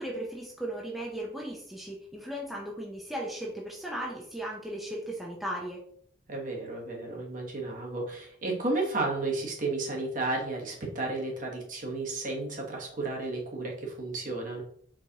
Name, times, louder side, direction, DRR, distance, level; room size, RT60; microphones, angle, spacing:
voice 1, 0.0-5.8, right 1 dB, ahead, -4 dB, 0.6 m, -36 dB
voice 2, 6.3-14.6, right 2 dB, 40° right, -1 dB, 1.2 m, -33 dB
4.6 x 4.0 x 2.8 m, 0.63 s
head